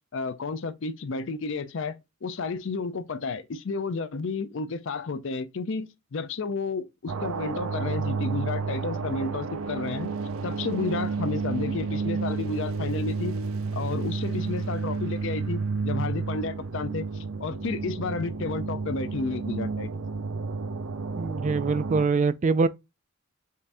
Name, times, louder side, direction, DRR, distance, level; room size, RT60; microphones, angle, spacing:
voice 1, 0.1-10.1 10.4-13.3 13.7-20.0, left 4 dB, 60° left, 0.5 m, -32 dB
sound 1, 7.1-22.1, right 4 dB, 85° right, 0.6 m, -31 dB
voice 2, 21.2-22.7, right 4 dB, 35° right, 0.3 m, -24 dB
5.5 x 2.6 x 3.3 m
head